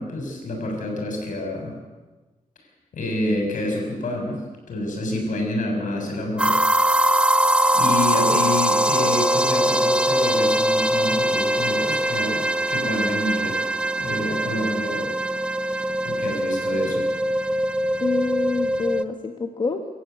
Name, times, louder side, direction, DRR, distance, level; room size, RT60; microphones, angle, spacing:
voice 1, 0.0-1.7 2.9-4.4 4.7-6.6 7.7-12.4 12.7-13.6 14.0-15.1 15.7-17.0, left 1 dB, 65° left, 2 dB, 7.4 m, -28 dB
sound 1, 6.4-19.0, right 1 dB, 5° right, 0.8 m, -22 dB
voice 2, 8.2-9.2 18.0-19.8, left 4 dB, 35° left, 4 dB, 1.5 m, -28 dB
26.0 x 14.5 x 9.5 m, 1.2 s
wide cardioid pair, 140°, 14 cm